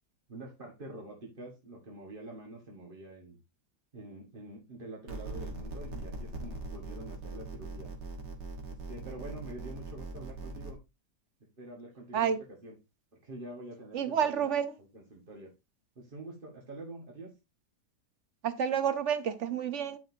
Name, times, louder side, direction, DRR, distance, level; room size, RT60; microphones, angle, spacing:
voice 1, 0.3-3.4 3.9-7.9 8.7-10.8 11.6-12.3 12.6-12.7 13.2-15.5 16.0-17.3, right 1 dB, 30° right, 1.7 m, -46 dB
sound 1, 5.1-10.7, right 2 dB, 85° right, 2.2 m, -41 dB
voice 2, 13.9-14.7 18.4-20.0, right 8 dB, 55° right, 0.9 m, -29 dB
10.0 x 6.1 x 2.7 m
omnidirectional pair, 1.8 m